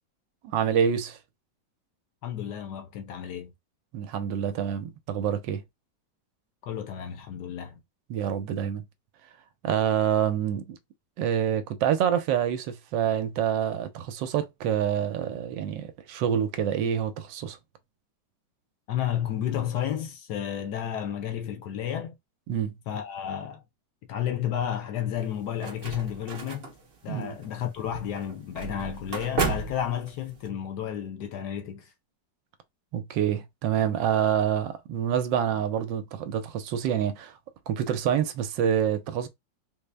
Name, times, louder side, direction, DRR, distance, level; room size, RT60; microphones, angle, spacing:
voice 1, 0.4-1.2 3.9-5.6 8.1-8.8 9.6-10.8 11.2-17.6 22.5-22.8 27.1-27.4 32.9-37.4 37.7-39.3, right 9 dB, 80° right, 1.3 m, -27 dB
voice 2, 2.2-3.5 6.6-7.8 18.9-22.1 22.9-23.6 24.1-26.7 27.0-31.9, left 10 dB, 70° left, 1.2 m, -32 dB
sound 1, 25.2-30.5, right 4 dB, 45° right, 0.8 m, -34 dB
4.0 x 2.0 x 3.3 m
omnidirectional pair, 2.0 m